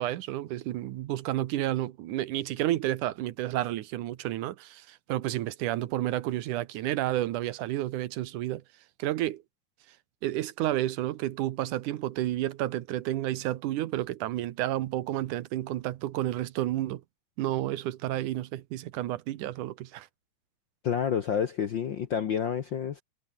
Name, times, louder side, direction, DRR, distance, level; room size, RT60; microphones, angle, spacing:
voice 1, 0.0-8.6 9.0-9.4 10.2-17.0 17.4-20.1, right 14 dB, 80° right, 2.5 m, -31 dB
voice 2, 20.8-23.0, left 8 dB, 60° left, 1.2 m, -29 dB
omnidirectional pair, 3.6 m